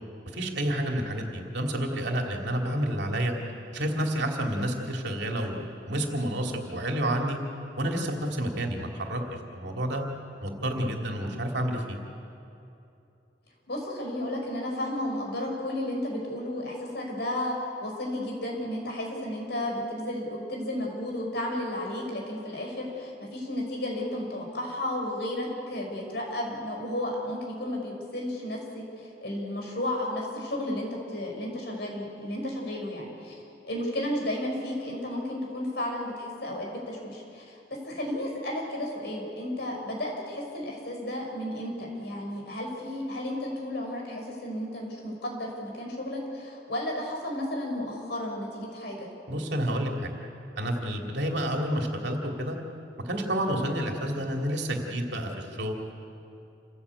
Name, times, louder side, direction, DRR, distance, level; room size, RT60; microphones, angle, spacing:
voice 1, 0.3-3.3 3.7-7.4 7.8-9.2 9.5-10.0 10.4-12.0 49.3-50.1 50.5-52.6 53.0-55.7, right 1 dB, 70° right, 1 dB, 2.9 m, -29 dB
voice 2, 13.7-28.8 29.2-33.4 33.6-37.5 37.8-49.1, left 1 dB, 65° left, 0 dB, 5.8 m, -33 dB
28.0 x 16.5 x 8.4 m, 2.7 s
head